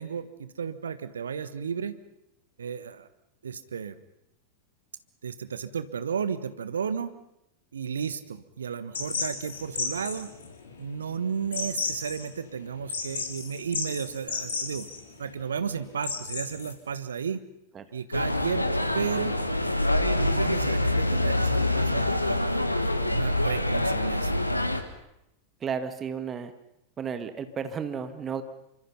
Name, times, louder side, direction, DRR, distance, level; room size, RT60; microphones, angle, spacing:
voice 1, 0.0-2.0 2.6-3.1 3.4-4.0 5.2-7.1 7.7-10.3 10.8-14.9 15.2-17.4 17.9-19.4 20.1-24.5, right 7 dB, 70° right, 13 dB, 1.3 m, -33 dB
sound 1, 8.9-16.7, left 4 dB, 65° left, 3.7 m, -34 dB
sound 2, 18.1-24.8, left 1 dB, 85° left, 1.7 m, -25 dB
voice 2, 25.6-26.5 27.0-28.4, right 7 dB, 25° right, 9 dB, 2.0 m, -33 dB
26.5 x 25.0 x 5.7 m, 0.85 s
figure-of-eight pair, 90°, 0 cm